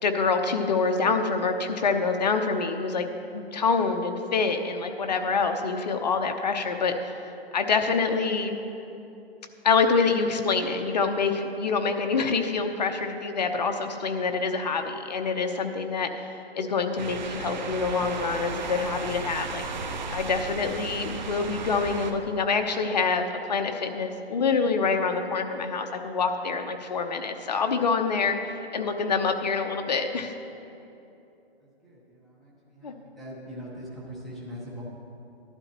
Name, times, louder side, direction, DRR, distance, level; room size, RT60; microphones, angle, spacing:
voice 1, 0.0-3.1 3.3-7.2 7.5-8.6 9.6-16.3 16.5-19.6 20.1-28.4 28.7-30.3 32.8-32.9, left 4 dB, 40° left, 6 dB, 0.8 m, -26 dB
sound 1, 17.0-22.1, right 4 dB, 45° right, 0.8 m, -35 dB
voice 2, 31.6-34.8, equal, ahead, -8 dB, 0.9 m, -42 dB
13.5 x 11.5 x 2.9 m, 2.8 s
hypercardioid pair, 160°, 32 cm